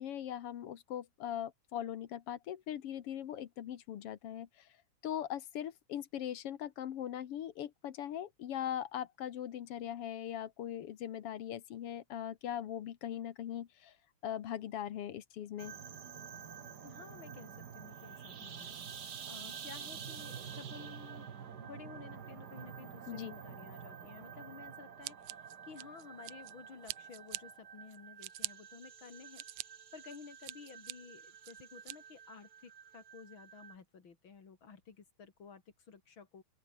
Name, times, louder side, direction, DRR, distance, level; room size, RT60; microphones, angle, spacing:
voice 1, 0.0-4.7 5.0-13.9 14.2-15.7 23.1-23.4, left 10 dB, 60° left, 1.9 m, -40 dB
sound 1, 15.6-33.8, right 7 dB, 45° right, 1.6 m, -49 dB
voice 2, 16.8-18.8 19.3-21.3 21.6-29.4 29.9-36.4, left 5 dB, 40° left, 3.5 m, -53 dB
Scissors, 25.0-26.5 26.9-27.4 27.9-28.5 29.1-29.7 30.1-30.9 31.4-32.0, right 18 dB, 80° right, 1.4 m, -43 dB
open air
omnidirectional pair, 3.3 m